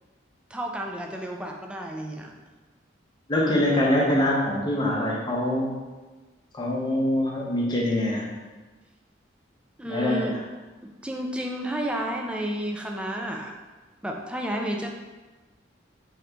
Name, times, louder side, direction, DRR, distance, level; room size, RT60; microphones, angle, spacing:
voice 1, 0.5-2.3 9.8-10.4 11.0-13.5 14.0-14.9, right 1 dB, 5° right, 1 dB, 0.3 m, -31 dB
voice 2, 3.3-5.7 6.5-8.3 9.8-10.4, left 1 dB, 25° left, -3 dB, 0.6 m, -24 dB
3.8 x 2.8 x 3.4 m, 1.2 s
head